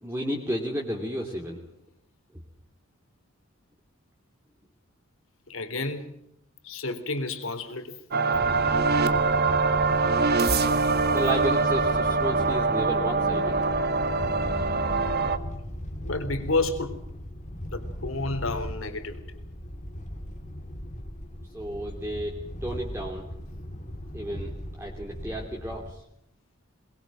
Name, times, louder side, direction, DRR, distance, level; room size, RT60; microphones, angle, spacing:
voice 1, 0.0-1.6 11.1-13.5 21.5-23.3 24.1-26.0, right 1 dB, 10° right, -1 dB, 2.9 m, -32 dB
voice 2, 5.5-6.1 6.6-8.0 16.0-17.0 17.7-19.2, left 2 dB, 70° left, 8 dB, 3.5 m, -30 dB
sound 1, 8.1-15.4, right 4 dB, 50° right, 1.7 m, -24 dB
sound 2, 8.3-25.9, equal, 35° left, 2.6 m, -38 dB
22.5 x 21.5 x 7.6 m, 0.77 s
head